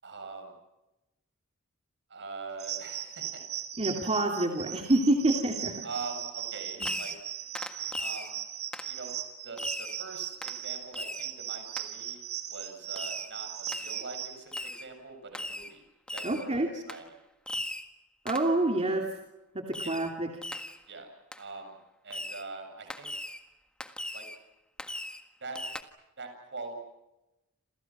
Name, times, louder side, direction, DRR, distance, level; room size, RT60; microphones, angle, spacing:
voice 1, 0.0-0.5 2.1-3.4 5.8-7.1 7.9-8.4 8.9-9.1 9.4-12.2 12.5-15.8 16.1-17.0 19.8-20.0 20.9-21.1 21.4-21.8 22.0-23.1 24.1-24.3 25.4-25.6 26.2-26.7, right 3 dB, 55° right, 5 dB, 7.8 m, -43 dB
sound 1, 2.6-14.4, right 11 dB, 85° right, 3.3 m, -38 dB
voice 2, 3.8-5.8 6.8-6.9 7.8-7.9 16.2-16.7 18.2-19.2 19.5-20.3, right 1 dB, 30° right, 2 dB, 2.8 m, -27 dB
Fireworks, 6.8-7.3 7.5-8.3 8.7-8.9 9.6-10.0 10.4-10.6 10.9-11.3 11.8-11.9 13.0-13.3 13.7-14.0 14.5-14.9 15.3-15.7 16.1-16.5 16.9-17.0 17.5-17.9 18.3-18.5 19.7-20.1 20.4-20.8 21.3-21.4 22.1-22.5 22.9-23.4 23.8-24.4 24.8-25.2 25.5-25.8, left 1 dB, 5° left, 1.7 m, -38 dB
28.5 x 28.0 x 6.2 m, 0.94 s
head